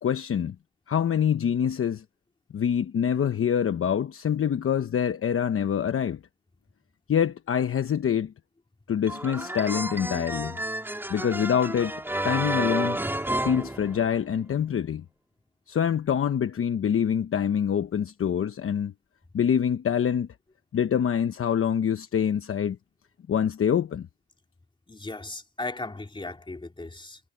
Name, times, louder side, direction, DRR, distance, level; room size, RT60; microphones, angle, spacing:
voice 1, 0.0-0.5 0.9-2.0 2.5-6.2 7.1-8.3 8.9-10.6 11.1-13.0 13.4-15.0 15.7-18.9 19.3-20.3 20.7-22.8 23.3-24.1, left 8 dB, 45° left, 1.1 m, -25 dB
sound 1, 9.1-14.5, right 1 dB, 5° right, 3.0 m, -31 dB
voice 2, 24.9-27.2, left 2 dB, 15° left, 3.3 m, -36 dB
cardioid pair, 90°, 30 cm